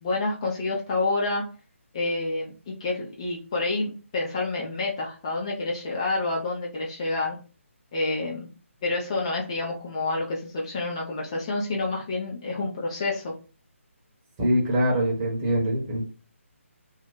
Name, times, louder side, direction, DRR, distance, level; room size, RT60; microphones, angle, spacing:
voice 1, 0.0-1.4 1.9-7.4 7.9-8.5 8.8-13.3, left 3 dB, 25° left, -3 dB, 0.5 m, -28 dB
voice 2, 14.4-16.0, equal, 20° right, -2 dB, 0.9 m, -23 dB
2.7 x 2.1 x 3.8 m, 0.37 s
figure-of-eight pair, 145°, 7 cm